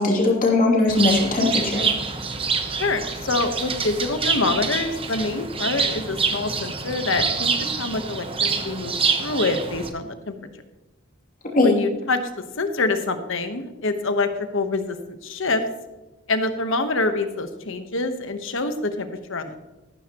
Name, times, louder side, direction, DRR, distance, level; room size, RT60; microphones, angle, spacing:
voice 1, 0.0-1.9 11.5-11.7, left 2 dB, 40° left, -1 dB, 2.7 m, -19 dB
Bird, 0.9-9.9, right 5 dB, 25° right, 0.9 m, -26 dB
voice 2, 2.8-10.3 11.6-15.0 15.2-15.6 16.3-19.6, left 3 dB, 65° left, 8 dB, 1.1 m, -26 dB
14.0 x 12.5 x 3.0 m, 1.1 s
head